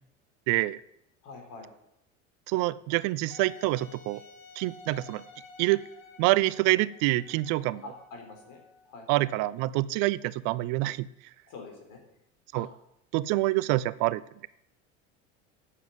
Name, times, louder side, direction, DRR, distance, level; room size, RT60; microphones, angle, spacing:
voice 1, 0.5-0.8 2.5-4.2 4.6-5.2 5.6-5.8 6.2-7.8 9.1-11.1 12.5-12.7 13.1-14.5, right 19 dB, 55° right, 19 dB, 0.5 m, -26 dB
voice 2, 1.2-1.7 7.8-9.3 11.5-12.0 12.5-12.7, left 3 dB, 55° left, 3 dB, 4.0 m, -45 dB
Wind instrument woodwind instrument, 3.3-8.9, left 4 dB, 85° left, 1.7 m, -52 dB
8.3 x 7.1 x 7.2 m, 0.79 s
hypercardioid pair, 80°, 38 cm